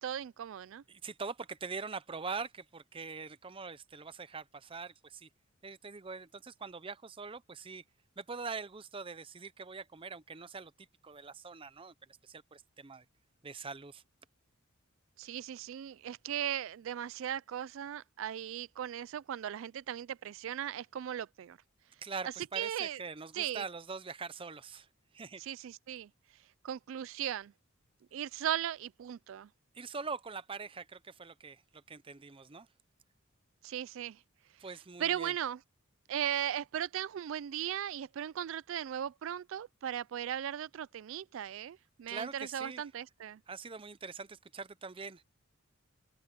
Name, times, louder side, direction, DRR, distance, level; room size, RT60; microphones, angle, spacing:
voice 1, 0.0-0.8 15.2-21.6 22.6-23.0 23.3-23.6 25.4-26.1 26.6-27.5 28.1-29.5 33.6-34.2 35.0-35.6 36.1-43.4, right 10 dB, 65° right, 0.3 m, -37 dB
voice 2, 0.9-5.3 5.6-7.8 8.2-11.9 12.2-13.0 13.4-14.0 22.0-24.9 25.1-25.4 29.7-32.7 34.6-35.3 42.1-42.9 43.5-45.2, right 4 dB, 25° right, 0.6 m, -43 dB
open air
head